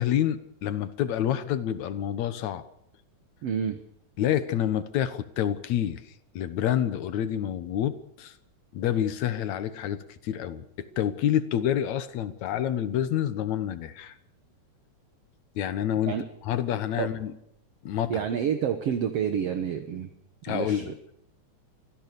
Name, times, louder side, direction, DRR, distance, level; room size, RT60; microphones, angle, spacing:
voice 1, 0.0-2.6 4.2-6.0 6.4-8.3 8.7-14.1 15.6-16.2 16.4-17.3 17.8-18.3 20.4-20.9, left 10 dB, 70° left, 12 dB, 2.4 m, -28 dB
voice 2, 3.4-3.8 16.1-16.2 17.0-17.1 18.1-20.1 20.5-20.9, right 8 dB, 60° right, 7 dB, 2.1 m, -28 dB
25.5 x 15.5 x 6.9 m, 0.76 s
omnidirectional pair, 3.5 m